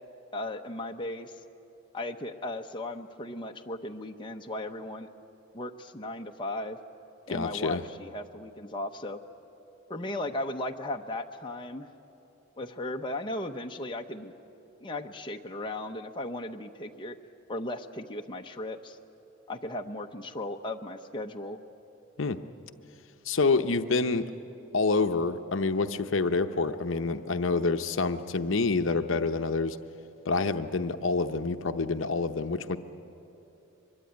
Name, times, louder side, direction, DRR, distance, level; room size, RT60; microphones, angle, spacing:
voice 1, 0.3-1.3 1.9-5.1 5.5-6.8 7.3-9.2 9.9-11.9 12.6-14.3 14.8-17.2 17.5-19.0 19.5-21.6, left 1 dB, 25° left, 3 dB, 0.8 m, -36 dB
voice 2, 7.3-7.8 22.2-22.4 23.2-24.3 24.7-29.8 30.2-32.8, left 3 dB, 70° left, 8 dB, 0.8 m, -27 dB
24.0 x 22.0 x 9.4 m, 2.9 s
head